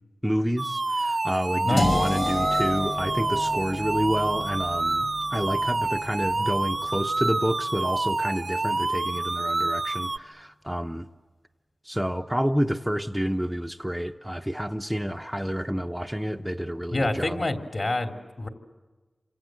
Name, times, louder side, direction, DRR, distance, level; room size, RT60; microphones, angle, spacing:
voice 1, 0.2-11.1 11.8-17.4, equal, 5° right, 4 dB, 0.9 m, -29 dB
sound 1, 0.6-10.2, right 2 dB, 45° right, 0.8 m, -28 dB
voice 2, 1.6-2.0 16.9-18.5, left 2 dB, 50° left, 5 dB, 3.3 m, -27 dB
sound 2, 1.8-7.7, left 2 dB, 80° left, 5.8 m, -32 dB
28.5 x 26.0 x 7.7 m, 1.3 s
wide cardioid pair, 65°, 0 cm